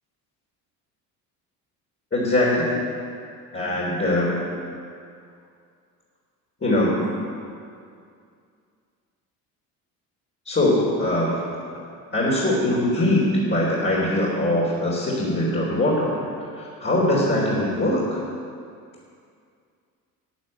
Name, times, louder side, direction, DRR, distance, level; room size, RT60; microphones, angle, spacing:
voice 1, 2.1-2.8 3.5-4.4 6.6-7.0 10.5-11.4 11.7-11.8 12.1-16.2 16.5-18.2, left 1 dB, 25° left, -7 dB, 3.8 m, -22 dB
10.5 x 8.6 x 7.9 m, 2.3 s
hypercardioid pair, 65°, 44 cm